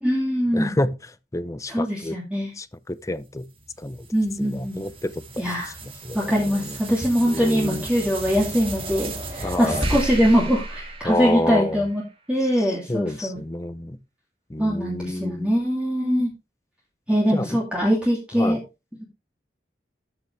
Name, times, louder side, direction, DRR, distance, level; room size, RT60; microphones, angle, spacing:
voice 1, 0.0-0.8 1.7-2.5 4.1-4.8 5.4-5.7 6.1-12.0 12.3-13.4 14.6-16.3 17.1-18.6, equal, 5° right, 2.8 m, -22 dB
voice 2, 0.5-2.2 2.6-3.5 3.8-4.1 4.4-5.4 5.8-6.8 7.2-7.9 9.4-9.9 11.0-11.8 12.6-14.0 14.5-15.5 17.3-17.6 18.3-18.6, left 1 dB, 20° left, 0.6 m, -29 dB
sound 1, 3.4-12.0, right 1 dB, 30° right, 2.1 m, -34 dB
13.0 x 6.2 x 3.3 m
head